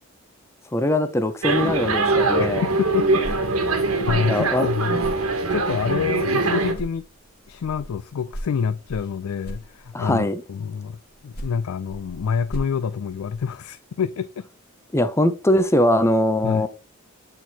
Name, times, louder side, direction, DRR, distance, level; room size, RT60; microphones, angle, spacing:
voice 1, 0.7-2.6 4.3-4.7 9.9-10.4 14.9-16.7, left 1 dB, 15° left, 0.5 m, -21 dB
sound 1, 1.4-6.7, right 3 dB, 90° right, 1.3 m, -22 dB
voice 2, 2.4-3.2 4.0-5.0 5.5-7.1 7.5-14.4 16.4-16.7, left 6 dB, 85° left, 0.4 m, -27 dB
sound 2, 3.1-6.4 6.7-10.2 11.1-13.7, equal, 50° left, 1.3 m, -39 dB
8.1 x 4.5 x 2.8 m
head